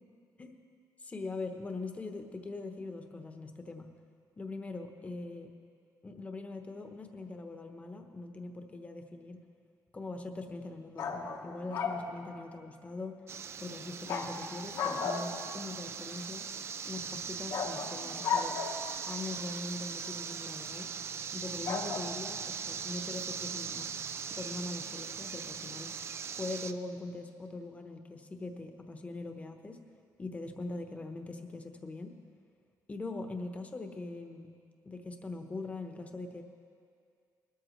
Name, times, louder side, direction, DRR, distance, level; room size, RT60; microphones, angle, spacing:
voice 1, 1.0-3.9 4.4-5.5 6.0-9.4 9.9-13.1 13.6-16.4 16.8-18.6 19.1-20.9 21.3-23.9 24.3-25.9 26.4-29.8 30.2-32.1 32.9-34.5 34.8-36.4, left 2 dB, 20° left, 5 dB, 0.9 m, -42 dB
sound 1, 11.0-12.1 14.1-14.3 14.7-15.5 17.5-18.9 21.7-22.0, left 5 dB, 75° left, 1.3 m, -34 dB
sound 2, 13.3-26.7, right 6 dB, 40° right, 0.4 m, -40 dB
20.5 x 13.0 x 3.2 m, 2.3 s
cardioid pair, 150°, 7 cm